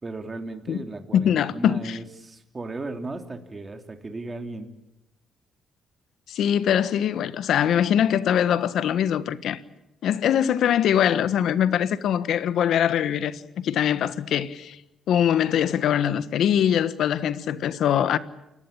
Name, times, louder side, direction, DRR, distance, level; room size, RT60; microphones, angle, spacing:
voice 1, 0.0-4.7, right 2 dB, 25° right, 3.2 m, -36 dB
voice 2, 1.1-2.0 6.3-9.6 10.0-14.8 15.1-18.2, left 9 dB, 75° left, 1.4 m, -22 dB
29.0 x 18.5 x 8.7 m
cardioid pair, 90°, 0 cm